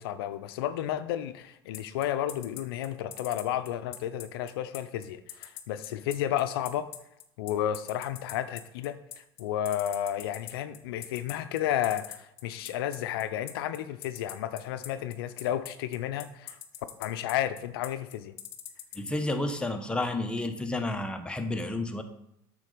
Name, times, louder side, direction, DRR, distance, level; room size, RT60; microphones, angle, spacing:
voice 1, 0.0-6.9 7.4-16.6 17.0-18.3, left 11 dB, 85° left, 12 dB, 0.4 m, -32 dB
sound 1, 1.7-19.1, left 11 dB, 55° left, 0.8 m, -42 dB
voice 2, 18.9-22.0, left 2 dB, 10° left, 5 dB, 0.9 m, -31 dB
7.5 x 3.8 x 5.0 m, 0.80 s
supercardioid pair, 90°, 12 cm